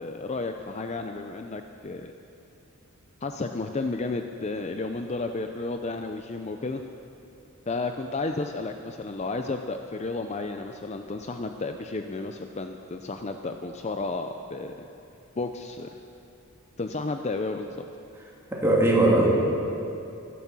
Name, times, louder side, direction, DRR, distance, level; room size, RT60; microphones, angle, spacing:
voice 1, 0.0-2.1 3.2-6.8 7.7-14.9 15.4-15.9 16.8-17.7, left 3 dB, 30° left, 6 dB, 0.5 m, -32 dB
voice 2, 18.5-19.3, right 2 dB, 10° right, -4 dB, 2.6 m, -20 dB
16.0 x 11.0 x 6.1 m, 2.7 s
head